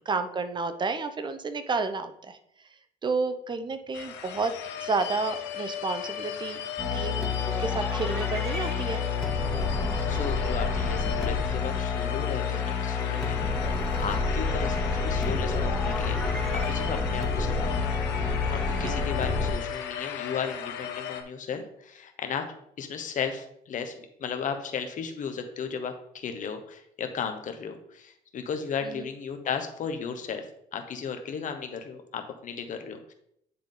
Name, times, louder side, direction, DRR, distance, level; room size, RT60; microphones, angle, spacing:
voice 1, 0.1-2.4 3.0-4.5 4.8-6.6 6.9-9.1 18.8-19.0 28.8-29.1, right 4 dB, 25° right, 10 dB, 0.7 m, -31 dB
sound 1, 3.9-21.2, left 8 dB, 85° left, 1.0 m, -36 dB
sound 2, 6.8-19.5, left 4 dB, ahead, 1.5 m, -28 dB
voice 2, 10.1-13.4 14.0-16.2 16.5-23.9 24.2-30.5 30.7-33.1, left 6 dB, 50° left, 6 dB, 1.0 m, -35 dB
9.6 x 3.5 x 3.8 m, 0.73 s
cardioid pair, 110°, 17 cm